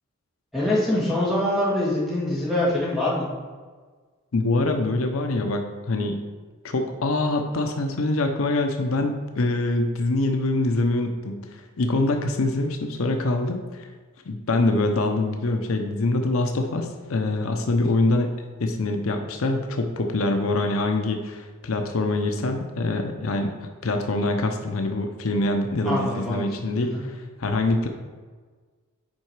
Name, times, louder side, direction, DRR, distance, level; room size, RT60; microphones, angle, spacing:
voice 1, 0.5-3.3 25.8-26.5 26.7-27.0, left 1 dB, ahead, -7 dB, 2.0 m, -24 dB
voice 2, 4.3-6.2 6.6-13.9 14.3-23.5 23.8-27.9, left 2 dB, 70° left, 5 dB, 0.6 m, -24 dB
7.4 x 4.8 x 4.7 m, 1.4 s
head